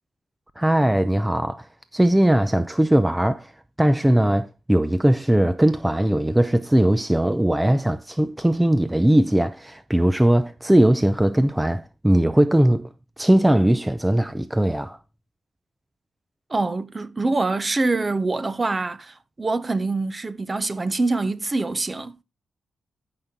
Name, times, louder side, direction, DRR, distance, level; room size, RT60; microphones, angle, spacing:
voice 1, 0.6-3.5 3.8-12.9 13.2-15.0, right 1 dB, 10° right, 0.7 m, -19 dB
voice 2, 16.5-22.2, right 3 dB, 30° right, 1.0 m, -25 dB
12.5 x 5.9 x 3.9 m
cardioid pair, 70°, 0 cm